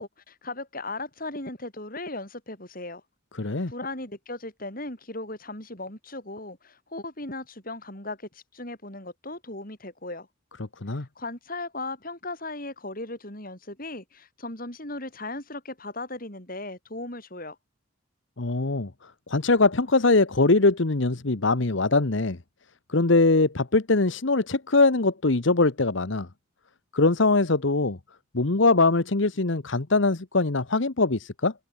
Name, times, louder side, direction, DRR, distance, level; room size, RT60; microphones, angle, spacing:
voice 1, 0.0-3.0 3.7-10.3 10.9-17.6, left 2 dB, 45° left, 6.6 m, -37 dB
voice 2, 3.4-3.7 10.8-11.1 18.4-18.9 19.3-22.4 22.9-26.3 26.9-28.0 28.3-31.5, left 3 dB, 65° left, 1.1 m, -22 dB
head